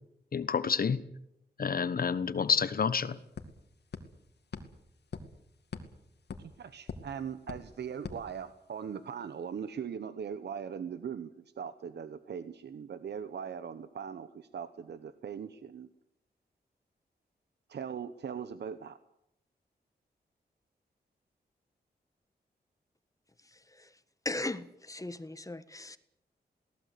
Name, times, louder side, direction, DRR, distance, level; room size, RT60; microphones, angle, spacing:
voice 1, 0.3-1.0 1.6-3.2, left 6 dB, 60° left, 13 dB, 1.3 m, -29 dB
sound 1, 2.2-2.3 2.6-9.0, left 5 dB, 80° left, 2.5 m, -47 dB
voice 2, 6.4-15.9 17.7-19.0, right 7 dB, 80° right, 12 dB, 1.0 m, -40 dB
voice 3, 23.5-23.9 24.2-26.0, left 2 dB, 20° left, 12 dB, 1.4 m, -38 dB
22.0 x 18.0 x 8.4 m, 0.79 s
wide cardioid pair, 95°, 17 cm